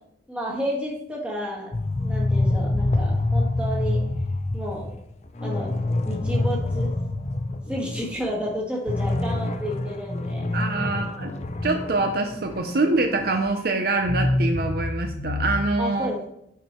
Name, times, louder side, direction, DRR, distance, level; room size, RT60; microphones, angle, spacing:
voice 1, 0.3-4.0 4.5-5.0 5.4-5.7 6.0-6.9 7.7-10.5 15.8-16.3, equal, 5° right, -4 dB, 1.6 m, -31 dB
sound 1, 1.7-8.2 8.5-8.6 8.9-13.5 14.0-15.6, left 2 dB, 35° left, 0.5 m, -26 dB
voice 2, 10.5-11.3 11.6-16.1, right 2 dB, 55° right, 5 dB, 0.6 m, -25 dB
8.0 x 4.6 x 4.4 m, 0.77 s
head